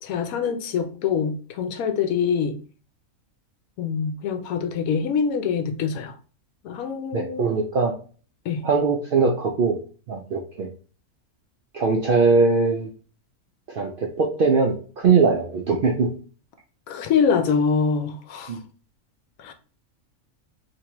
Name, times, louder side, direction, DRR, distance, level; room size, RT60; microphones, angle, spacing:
voice 1, 0.0-2.6 3.8-6.1 6.6-7.5 8.4-8.6 16.9-18.6 19.4-19.5, left 6 dB, 80° left, 1.0 m, -24 dB
voice 2, 7.1-7.9 8.6-9.8 10.1-10.7 11.7-12.9 13.7-16.1 18.5-18.6, right 4 dB, 70° right, 0.5 m, -21 dB
3.4 x 2.8 x 2.9 m
omnidirectional pair, 1.5 m